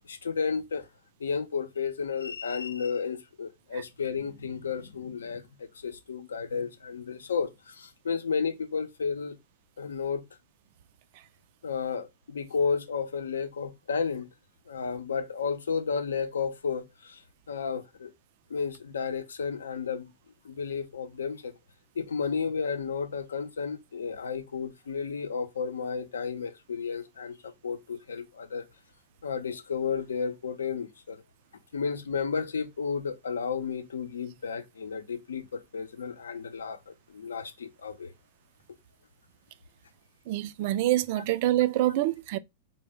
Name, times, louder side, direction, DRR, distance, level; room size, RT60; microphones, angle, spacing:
voice 1, 0.0-0.9 1.2-9.4 9.8-10.2 11.6-14.3 14.7-18.1 18.5-20.1 20.4-21.5 22.0-28.6 29.2-31.2 31.7-38.1, left 5 dB, 85° left, 0.6 m, -32 dB
voice 2, 40.3-42.4, right 14 dB, 55° right, 0.3 m, -26 dB
4.1 x 2.0 x 3.4 m
hypercardioid pair, 105°, 0 cm